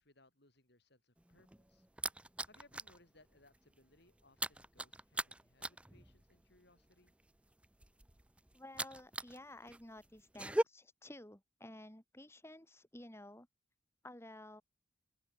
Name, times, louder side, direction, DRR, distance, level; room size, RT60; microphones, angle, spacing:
voice 1, 0.0-1.9 2.2-7.1, left 2 dB, 55° left, 5.9 m, -67 dB
sound 1, 1.2-3.0 3.3-3.6 3.8-9.4 9.7-10.6, right 1 dB, 5° right, 0.5 m, -40 dB
voice 2, 8.5-13.5 14.0-14.6, left 1 dB, 15° left, 2.0 m, -53 dB
open air
head